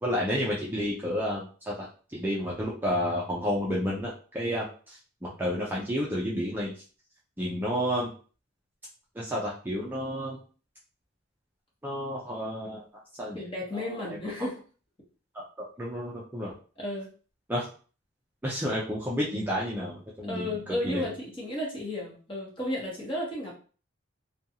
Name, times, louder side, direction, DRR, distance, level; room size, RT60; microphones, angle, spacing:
voice 1, 0.0-1.9 2.1-6.7 7.4-8.1 9.2-10.4 11.8-13.4 13.7-14.2 15.3-16.5 17.5-17.7 18.4-20.6 20.8-21.1, equal, 10° right, -5 dB, 0.5 m, -31 dB
voice 2, 13.3-14.6 16.8-17.1 20.2-23.5, left 1 dB, 25° left, -4 dB, 1.0 m, -33 dB
2.5 x 2.3 x 2.8 m, 0.39 s
head